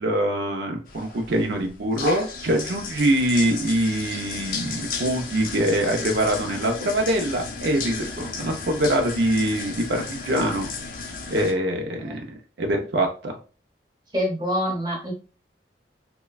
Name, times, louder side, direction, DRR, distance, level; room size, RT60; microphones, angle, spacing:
voice 1, 0.0-10.7 11.3-12.2 12.6-13.3, right 1 dB, 70° right, 2 dB, 0.5 m, -24 dB
sound 1, 0.9-11.5, left 4 dB, 50° left, 0.4 m, -34 dB
voice 2, 14.1-15.1, equal, 25° right, -1 dB, 0.8 m, -26 dB
3.0 x 2.2 x 2.3 m, 0.36 s
head